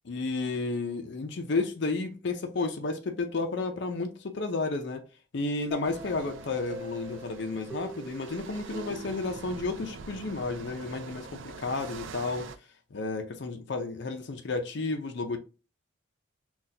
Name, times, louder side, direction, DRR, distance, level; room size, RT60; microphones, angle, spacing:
voice 1, 0.1-5.0 5.3-12.5 12.9-15.4, left 3 dB, 60° left, 0.5 m, -32 dB
sound 1, 5.7-10.4, right 2 dB, 10° right, 0.6 m, -45 dB
sound 2, 5.8-12.6, right 5 dB, 70° right, 0.4 m, -45 dB
4.0 x 2.3 x 2.7 m
head